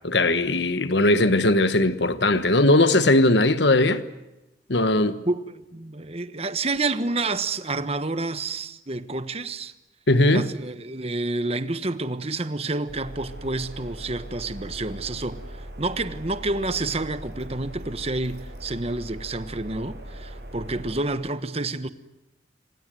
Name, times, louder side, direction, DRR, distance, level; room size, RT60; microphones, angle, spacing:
voice 1, 0.0-4.0 4.7-5.2 10.1-10.5, left 2 dB, 70° left, 1.4 m, -19 dB
voice 2, 5.2-9.7 10.3-21.9, right 2 dB, 35° right, 1.3 m, -29 dB
sound 1, 12.9-21.0, right 1 dB, 60° right, 6.6 m, -40 dB
27.0 x 26.0 x 7.8 m
head